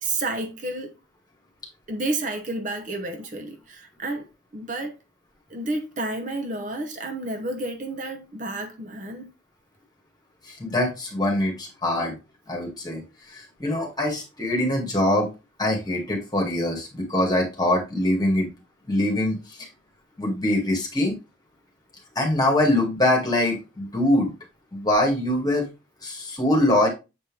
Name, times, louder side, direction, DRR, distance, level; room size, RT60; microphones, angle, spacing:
voice 1, 0.0-1.0 1.9-4.3 4.5-5.0 5.5-9.3, right 2 dB, 40° right, 0.9 m, -30 dB
voice 2, 10.5-12.2 12.5-15.3 15.6-18.5 18.9-19.7 20.2-21.2 22.2-24.3 24.7-25.7 26.0-26.9, left 1 dB, 20° left, 2.1 m, -23 dB
7.7 x 4.3 x 3.5 m
head